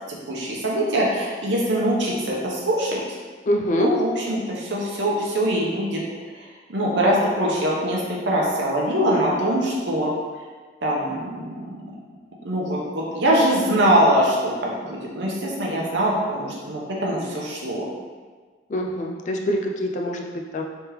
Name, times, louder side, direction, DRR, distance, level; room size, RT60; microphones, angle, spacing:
voice 1, 0.1-3.0 3.8-6.0 6.7-10.1 10.8-11.6 12.4-17.9, right 1 dB, 75° right, -3 dB, 0.8 m, -23 dB
voice 2, 3.5-3.9 18.7-20.6, equal, 40° left, 1 dB, 0.3 m, -24 dB
3.5 x 3.3 x 3.1 m, 1.5 s
head